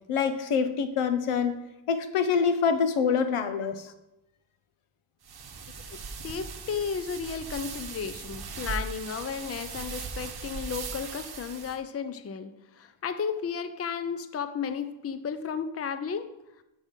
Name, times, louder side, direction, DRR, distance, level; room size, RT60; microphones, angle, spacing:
voice 1, 0.1-1.6 1.9-3.8, left 6 dB, 90° left, 9 dB, 0.9 m, -25 dB
sound 1, 5.2-11.8, right 4 dB, 50° right, 0.9 m, -39 dB
voice 2, 5.9-16.3, left 6 dB, 30° left, 10 dB, 0.5 m, -34 dB
6.3 x 5.5 x 6.5 m, 0.93 s
wide cardioid pair, 140°, 49 cm